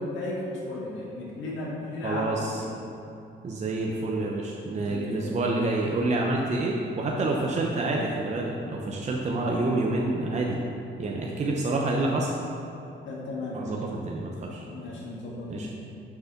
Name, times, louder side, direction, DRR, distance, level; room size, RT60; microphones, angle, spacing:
voice 1, 0.0-2.7 4.8-5.4 13.1-13.8 14.7-15.7, left 2 dB, 70° left, -5 dB, 1.7 m, -35 dB
voice 2, 2.0-2.6 3.4-10.6 11.0-12.3 13.5-14.6 15.5-15.7, right 2 dB, 35° right, -1 dB, 0.8 m, -28 dB
6.6 x 4.8 x 5.7 m, 2.7 s
cardioid pair, 90°, 20 cm